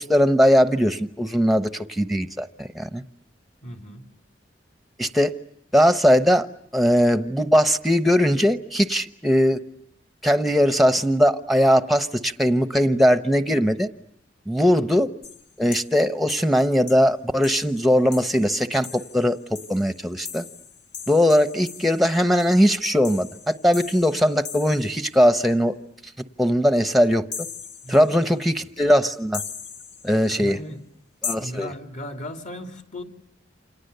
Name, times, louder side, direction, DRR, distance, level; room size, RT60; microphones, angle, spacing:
voice 1, 0.0-3.0 5.0-5.3 5.7-6.5 6.7-9.6 10.2-13.9 14.5-15.1 15.6-20.4 21.1-25.8 26.4-27.2 27.9-29.4 30.0-30.6 31.2-31.7, equal, ahead, 1.0 m, -20 dB
voice 2, 3.6-4.1 14.7-15.0 27.8-28.5 30.3-30.8 31.4-33.0, equal, 45° left, 2.8 m, -37 dB
sound 1, 15.2-16.0 16.3-16.5 16.9-17.0 17.4-25.2 27.3-28.4 29.3-30.4 31.2-31.3, left 6 dB, 65° left, 1.7 m, -38 dB
29.5 x 27.0 x 6.8 m
head